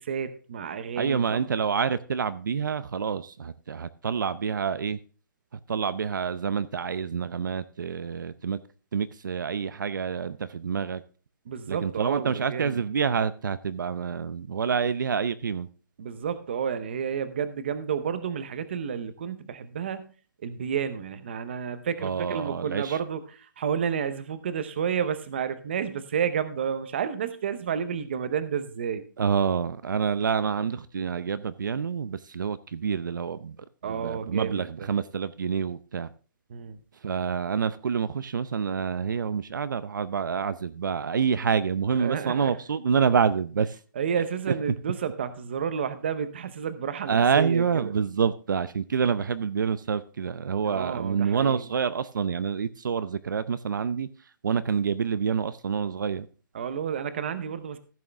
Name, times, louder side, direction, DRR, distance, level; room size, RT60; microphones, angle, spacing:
voice 1, 0.0-1.4 11.5-12.8 16.0-20.1 20.4-29.0 33.8-34.9 36.5-36.8 41.9-42.5 44.0-47.9 50.6-51.7 56.5-57.8, right 7 dB, 35° right, 0.8 m, -31 dB
voice 2, 1.0-5.0 5.7-8.6 8.9-11.0 11.7-15.7 22.0-23.0 29.2-33.6 33.8-36.1 37.0-43.8 47.1-54.1 54.4-56.3, right 6 dB, 65° right, 0.6 m, -27 dB
15.0 x 6.3 x 3.4 m
hypercardioid pair, 175°, 11 cm